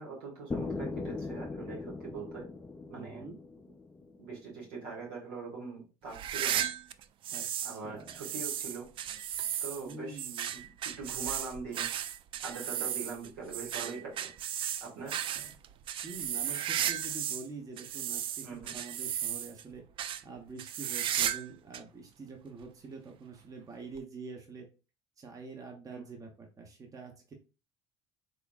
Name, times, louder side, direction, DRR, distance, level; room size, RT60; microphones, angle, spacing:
voice 1, 0.0-2.5 2.9-3.3 4.2-6.7 7.6-8.9 9.6-10.3 10.5-10.6 11.0-11.9 12.4-14.3 14.8-15.2 18.4-18.7 25.9-26.1, right 4 dB, 85° right, -3 dB, 2.0 m, -42 dB
sound 1, 0.5-4.4, left 3 dB, 15° left, 0.5 m, -39 dB
voice 2, 2.9-3.4 7.3-8.2 9.8-10.6 14.9-15.1 15.3-15.5 16.0-19.8 20.2-24.7 25.2-27.3, right 3 dB, 30° right, 2 dB, 1.0 m, -46 dB
sound 2, 6.1-7.8 8.1-17.5 17.8-19.6 20.0-20.2 20.6-21.5 21.7-21.8 22.6-22.7 24.0-24.1, right 10 dB, 50° right, 0.4 m, -35 dB
3.6 x 3.4 x 2.4 m, 0.32 s
supercardioid pair, 80°, 12 cm